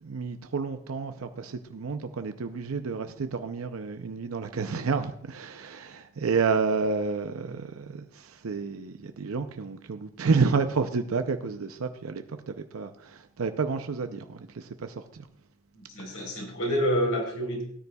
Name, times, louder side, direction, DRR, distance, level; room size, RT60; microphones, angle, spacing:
voice 1, 0.0-15.3 16.0-16.2, right 4 dB, 75° right, 8 dB, 0.6 m, -30 dB
voice 2, 15.9-17.6, equal, 65° left, 0 dB, 4.0 m, -28 dB
17.5 x 9.6 x 2.3 m, 0.67 s
head